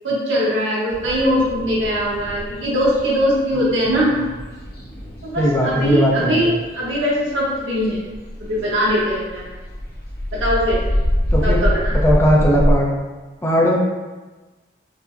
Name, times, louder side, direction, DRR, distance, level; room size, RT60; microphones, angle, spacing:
voice 1, 0.0-4.3 5.2-8.1 8.4-9.5 10.3-10.8 11.4-12.0, equal, 80° right, -6 dB, 0.9 m, -21 dB
sound 1, 0.9-12.7, equal, 55° left, 1.0 m, -25 dB
voice 2, 5.4-6.4 11.3-11.6 11.9-12.9 13.4-13.8, equal, 15° left, -3 dB, 0.5 m, -17 dB
4.6 x 2.1 x 2.5 m, 1.2 s
head